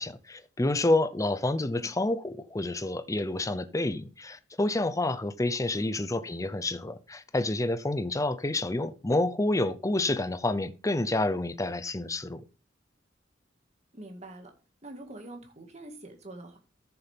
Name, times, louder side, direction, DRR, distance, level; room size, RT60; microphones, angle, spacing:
voice 1, 0.0-12.4, left 2 dB, 15° left, 0.6 m, -29 dB
voice 2, 13.9-14.5 14.8-16.6, right 1 dB, 35° right, 2.0 m, -45 dB
13.5 x 7.0 x 3.5 m
head